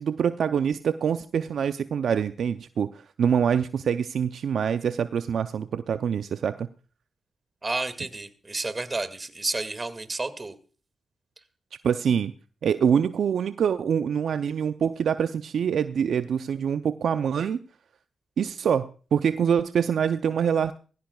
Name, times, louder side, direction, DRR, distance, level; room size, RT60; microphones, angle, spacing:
voice 1, 0.0-6.7 11.8-12.3 12.6-17.6 18.4-20.7, right 7 dB, 70° right, 11 dB, 0.5 m, -25 dB
voice 2, 7.6-10.5, right 3 dB, 35° right, 11 dB, 2.1 m, -31 dB
19.5 x 15.5 x 2.3 m, 0.37 s
supercardioid pair, 45°, 0 cm